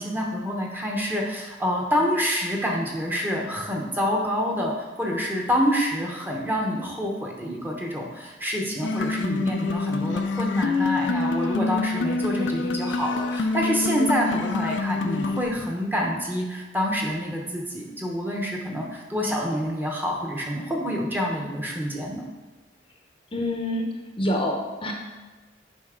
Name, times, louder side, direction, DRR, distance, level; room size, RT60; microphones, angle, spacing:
voice 1, 0.0-22.3, equal, 10° right, -1 dB, 0.9 m, -27 dB
sound 1, 8.8-15.4, left 3 dB, 85° left, 0.4 m, -26 dB
voice 2, 23.3-24.9, left 1 dB, 30° left, 1 dB, 0.7 m, -27 dB
8.1 x 5.2 x 3.7 m, 1.2 s
head